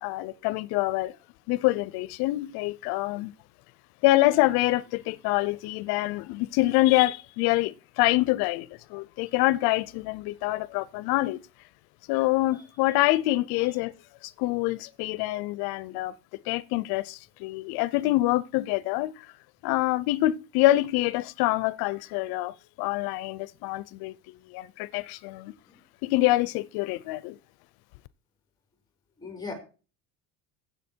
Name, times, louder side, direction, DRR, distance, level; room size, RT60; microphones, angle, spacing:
voice 1, 0.0-1.2 1.5-3.3 4.0-11.4 12.1-13.9 14.2-16.1 16.5-19.3 19.6-24.1 24.5-25.5 26.0-27.4, left 18 dB, 80° left, 0.6 m, -26 dB
voice 2, 29.2-29.5, left 4 dB, 10° left, 4.5 m, -39 dB
15.5 x 7.0 x 4.4 m
cardioid pair, 165°, 37 cm